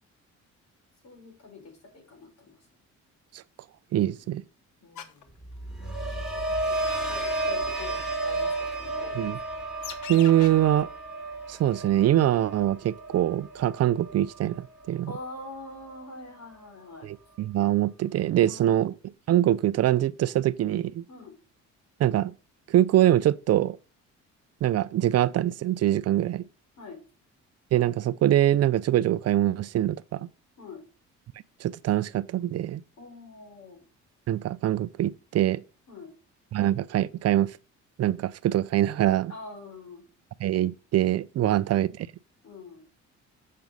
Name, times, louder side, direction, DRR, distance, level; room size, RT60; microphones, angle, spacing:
voice 1, 1.0-2.6 4.0-4.4 4.8-5.3 6.7-9.1 15.1-17.1 18.4-18.8 21.1-21.3 26.8-27.0 30.6-30.8 33.0-33.8 35.9-36.1 39.3-40.0 41.4-41.6 42.4-42.8, left 3 dB, 60° left, 4.4 m, -44 dB
voice 2, 3.9-4.4 9.2-9.4 10.1-10.9 11.5-15.1 17.0-18.9 19.3-21.0 22.0-22.3 22.7-23.8 24.6-26.5 27.7-30.3 31.6-32.8 34.3-35.6 36.5-37.6 38.0-39.3 40.4-41.9, right 12 dB, 55° right, 0.4 m, -24 dB
sound 1, 4.9-5.2 6.0-6.3 6.8-7.2 7.6-7.7 8.0-8.1 8.7-8.8 9.1-9.2 9.8-10.5 10.8-10.9, left 8 dB, 80° left, 1.2 m, -40 dB
sound 2, 5.4-15.5 15.9-16.3, right 2 dB, ahead, 2.3 m, -33 dB
7.6 x 5.8 x 5.3 m
cardioid pair, 90°, 30 cm